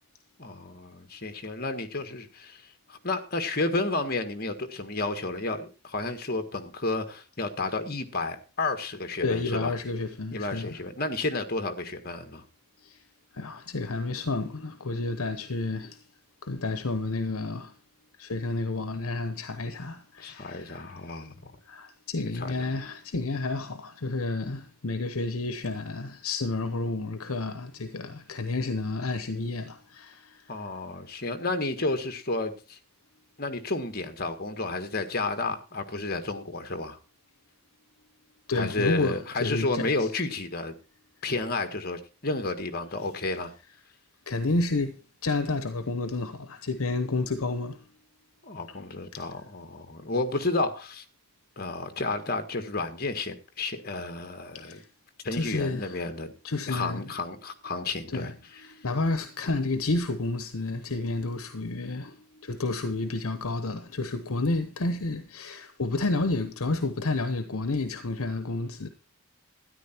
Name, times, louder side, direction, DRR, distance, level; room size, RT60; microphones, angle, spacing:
voice 1, 0.4-2.6 2.9-9.7 10.3-12.4 20.2-21.5 22.3-22.5 30.5-32.8 33.4-37.0 38.5-40.7 41.2-43.5 48.4-51.0 51.6-54.8 55.2-56.3 56.7-58.3, left 2 dB, 45° left, 1.6 m, -31 dB
voice 2, 9.2-10.8 12.8-13.0 13.3-16.0 16.4-17.7 18.2-20.8 21.6-30.4 38.5-40.1 44.3-47.8 48.7-48.8 49.1-49.2 54.5-54.9 55.3-56.0 56.4-57.1 58.1-68.9, left 3 dB, 75° left, 1.0 m, -30 dB
13.0 x 10.0 x 4.4 m
head